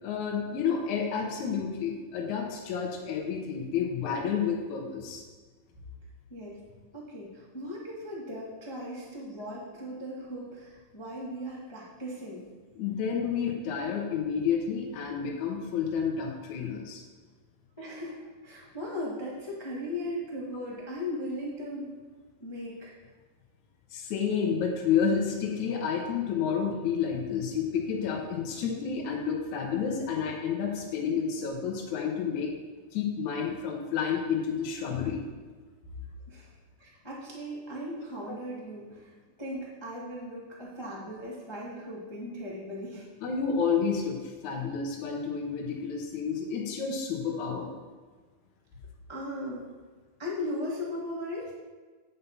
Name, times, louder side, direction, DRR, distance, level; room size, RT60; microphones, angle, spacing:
voice 1, 0.0-5.2 12.8-17.0 23.9-32.5 32.9-35.2 38.3-38.4 43.2-44.2 44.4-47.7, left 6 dB, 70° left, 0 dB, 2.3 m, -30 dB
voice 2, 6.9-12.5 17.8-21.9 22.4-23.0 36.3-36.5 36.8-39.1 39.4-43.1 49.1-49.7 50.2-51.5, left 1 dB, 30° left, -5 dB, 0.4 m, -38 dB
9.5 x 5.5 x 5.6 m, 1.4 s
omnidirectional pair, 3.8 m